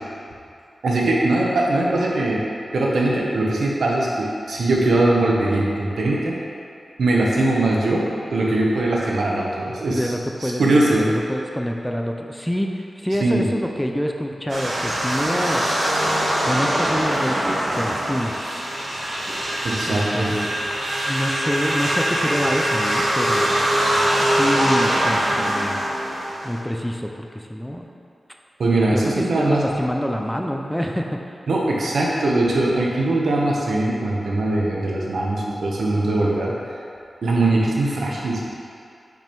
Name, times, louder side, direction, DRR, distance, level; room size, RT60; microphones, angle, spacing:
voice 1, 0.8-2.4 2.7-6.4 7.0-8.1 8.3-10.1 10.4-11.1 13.2-13.5 19.6-20.4 28.6-29.6 31.5-36.5 37.2-38.4, right 2 dB, 85° right, -3 dB, 1.1 m, -21 dB
voice 2, 9.9-10.6 10.9-15.7 16.4-18.4 19.9-20.5 21.0-23.5 24.2-25.8 26.4-27.9 28.9-31.2, equal, 5° left, 2 dB, 0.4 m, -26 dB
sound 1, 14.5-26.6, right 1 dB, 65° right, 1.5 m, -22 dB
5.9 x 5.2 x 4.4 m, 2.5 s
wide cardioid pair, 130°, 0 cm